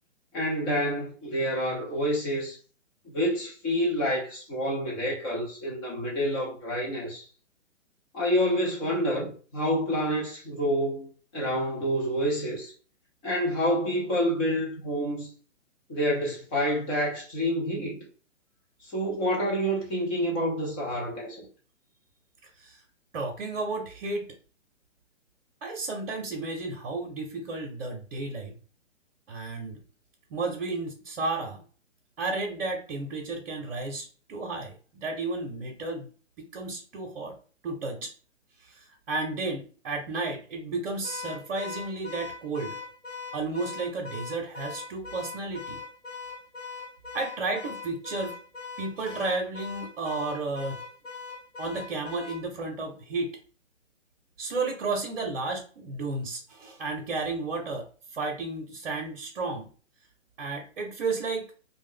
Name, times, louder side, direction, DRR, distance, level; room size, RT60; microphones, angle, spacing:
voice 1, 0.3-2.6 3.1-7.2 8.1-12.7 13.2-15.3 15.9-18.1 18.8-21.5, equal, 15° left, 0.5 m, -28 dB
voice 2, 23.1-24.3 25.6-28.5 29.3-29.8 30.3-31.6 32.2-36.1 36.4-37.4 37.6-38.1 38.6-42.7 43.3-45.8 47.1-48.4 48.8-50.8 51.6-53.3 54.4-57.9 58.1-59.7 60.4-61.5, right 3 dB, 50° right, 0.8 m, -32 dB
Car / Alarm, 41.0-52.5, left 5 dB, 90° left, 1.0 m, -41 dB
2.5 x 2.1 x 3.5 m
figure-of-eight pair, 130°, 37 cm